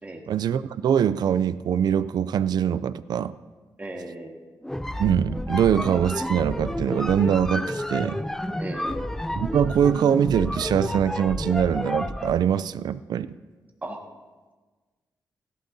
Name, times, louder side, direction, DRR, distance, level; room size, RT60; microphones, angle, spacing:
voice 1, 0.3-3.3 5.0-8.2 9.4-13.3, right 8 dB, 70° right, 15 dB, 0.4 m, -23 dB
voice 2, 3.8-4.4 8.6-9.0 13.8-14.0, right 2 dB, 20° right, 1 dB, 1.6 m, -36 dB
sound 1, 4.6-12.4, left 1 dB, 5° left, 0.4 m, -30 dB
17.0 x 12.0 x 2.7 m, 1.3 s
cardioid pair, 110°, 7 cm